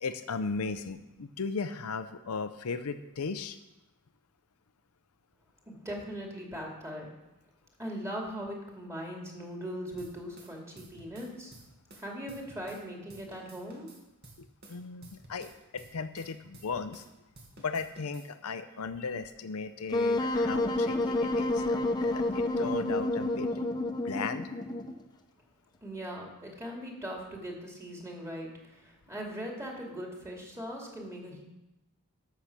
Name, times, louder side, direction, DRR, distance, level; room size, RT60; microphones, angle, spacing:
voice 1, 0.0-3.6 14.4-17.0 17.6-23.5 24.0-24.5, left 4 dB, 90° left, 10 dB, 0.6 m, -36 dB
voice 2, 5.7-7.1 7.8-11.5 12.0-13.9 25.8-28.5 28.8-31.4, equal, 15° right, -1 dB, 2.5 m, -40 dB
sound 1, 10.0-12.8 13.1-17.1 17.3-18.3, right 2 dB, 50° right, 2.0 m, -53 dB
Wind instrument woodwind instrument, 19.9-25.0, left 2 dB, 20° left, 0.9 m, -29 dB
13.5 x 6.8 x 6.0 m, 0.97 s
head